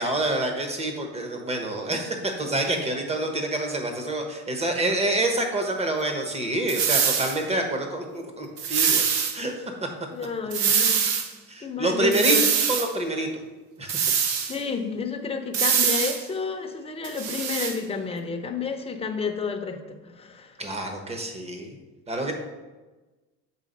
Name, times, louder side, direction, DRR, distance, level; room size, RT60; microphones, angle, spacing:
voice 1, 0.0-9.1 9.3-9.6 11.5-12.4 12.7-13.3 13.8-14.0 20.6-21.7 22.1-22.3, right 2 dB, 20° right, 4 dB, 1.1 m, -27 dB
sound 1, 6.7-7.4 8.6-9.3 10.5-11.3 12.1-12.9 13.9-14.6 15.5-16.2 17.0-17.7, right 7 dB, 80° right, 1.0 m, -23 dB
voice 2, 10.1-11.3 11.6-12.5 14.4-20.6, left 5 dB, 15° left, 4 dB, 0.8 m, -31 dB
7.5 x 3.5 x 5.3 m, 1.2 s
cardioid pair, 120°, 34 cm